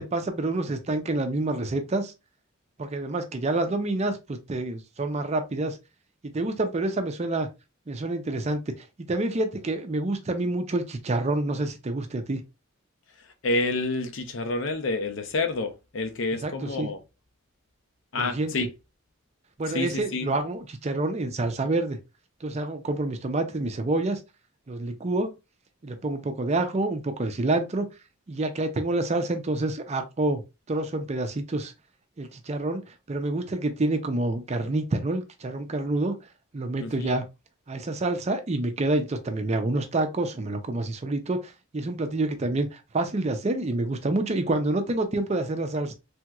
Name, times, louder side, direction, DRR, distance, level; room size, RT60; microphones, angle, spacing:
voice 1, 0.0-2.1 2.8-5.8 6.2-7.5 7.9-12.4 16.4-16.9 18.1-18.5 19.6-22.0 22.4-24.2 24.7-25.3 25.8-27.9 28.3-30.4 30.7-31.7 32.2-32.8 33.1-36.2 36.5-37.3 37.7-45.9, right 2 dB, 30° right, 0.5 m, -28 dB
voice 2, 13.4-17.0 18.1-18.7 19.7-20.3 36.8-37.2, left 2 dB, 65° left, 0.6 m, -28 dB
3.4 x 2.9 x 2.3 m
head